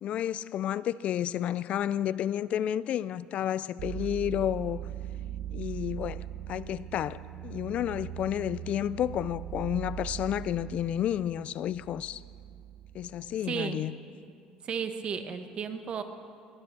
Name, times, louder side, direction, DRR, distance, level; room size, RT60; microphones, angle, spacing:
voice 1, 0.0-4.8 5.5-12.2 12.9-13.9, left 11 dB, 55° left, 0.3 m, -31 dB
sound 1, 3.8-13.4, right 11 dB, 75° right, 0.6 m, -40 dB
voice 2, 13.4-13.8 14.6-16.0, right 6 dB, 45° right, 1.2 m, -33 dB
22.0 x 7.9 x 7.0 m
cardioid pair, 105°, 3 cm